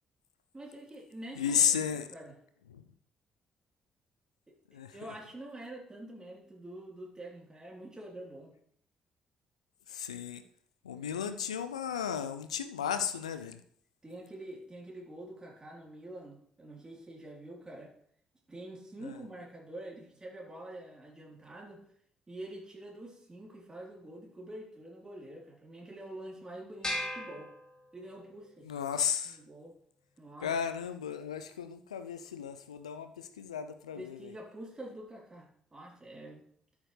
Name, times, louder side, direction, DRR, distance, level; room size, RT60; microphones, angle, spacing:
voice 1, 0.5-2.4 4.5-4.6 4.9-8.5 9.9-10.0 14.0-17.9 18.5-21.8 22.3-27.5 27.9-28.7 29.2-29.7 30.2-30.5 34.0-36.5, right 1 dB, 20° right, -2 dB, 3.7 m, -46 dB
voice 2, 1.4-2.1 2.7-2.8 4.7-4.9 9.9-10.4 10.8-13.6 19.0-19.1 28.7-29.4 30.4-34.2, left 8 dB, 85° left, 10 dB, 0.5 m, -33 dB
sound 1, 26.8-28.3, left 1 dB, 20° left, 2.7 m, -38 dB
12.5 x 7.2 x 3.3 m, 0.63 s
figure-of-eight pair, 45°, 3 cm